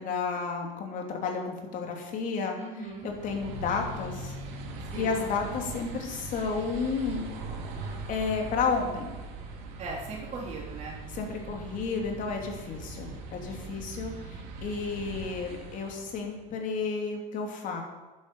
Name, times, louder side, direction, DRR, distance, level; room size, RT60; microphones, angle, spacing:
voice 1, 0.0-2.6 3.0-4.4 4.9-7.3 7.8-9.1 11.1-17.8, left 5 dB, 50° left, 2 dB, 3.0 m, -32 dB
voice 2, 2.6-3.1 4.9-5.2 9.8-11.0, right 3 dB, 40° right, -2 dB, 4.0 m, -38 dB
sound 1, 2.9-16.4, right 3 dB, 70° right, 2.8 m, -41 dB
12.5 x 10.5 x 5.6 m, 1.2 s
cardioid pair, 130°, 17 cm